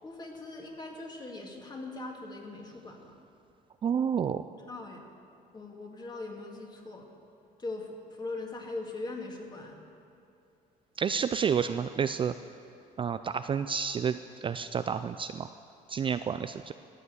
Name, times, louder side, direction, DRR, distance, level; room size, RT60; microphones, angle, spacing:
voice 1, 0.0-3.1 4.6-5.0 5.5-7.1 7.6-9.8, left 2 dB, 25° left, 1 dB, 2.1 m, -40 dB
voice 2, 3.8-4.4 11.0-12.3 13.0-15.5 15.9-16.7, right 7 dB, 30° right, 10 dB, 0.4 m, -30 dB
14.5 x 8.5 x 8.0 m, 2.6 s
cardioid pair, 110°, 17 cm